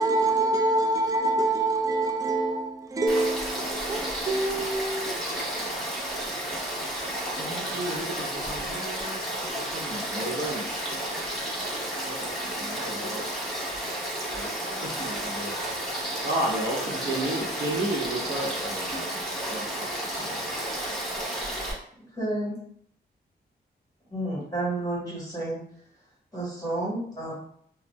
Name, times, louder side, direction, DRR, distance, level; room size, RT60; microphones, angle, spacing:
voice 1, 0.0-5.2, right 2 dB, 20° right, 0.4 m, -26 dB
Frog / Stream, 3.1-21.7, right 1 dB, ahead, 0.9 m, -32 dB
voice 2, 7.4-10.8 12.1-13.3 14.3-19.0 19.3-20.5, right 1 dB, 70° right, 0.8 m, -33 dB
voice 3, 22.2-22.5 24.1-25.6 26.3-27.3, right 1 dB, 20° left, 1.3 m, -30 dB
2.5 x 2.0 x 3.2 m
cardioid pair, 90°, 17 cm